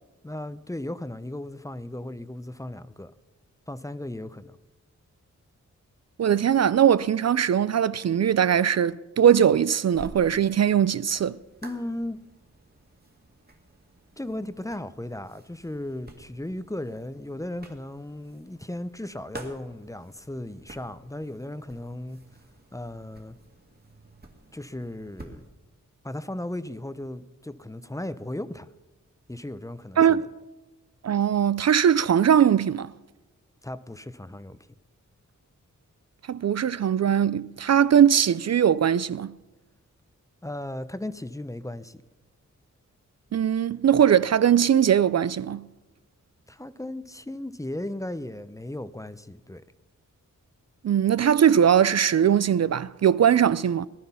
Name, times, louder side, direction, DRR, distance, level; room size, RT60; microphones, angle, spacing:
voice 1, 0.2-3.1 3.7-4.6 11.6-12.2 14.2-22.2 22.7-23.4 24.5-25.4 26.0-28.7 29.3-30.2 33.6-34.6 40.4-42.0 46.5-49.6, left 1 dB, 10° left, 0.7 m, -36 dB
voice 2, 6.2-11.4 30.0-30.3 31.0-32.9 36.3-39.3 43.3-45.7 50.8-53.9, right 9 dB, 55° right, 0.4 m, -20 dB
sound 1, 9.9-25.5, right 2 dB, 30° right, 2.2 m, -50 dB
19.0 x 12.0 x 5.7 m
wide cardioid pair, 90°, 31 cm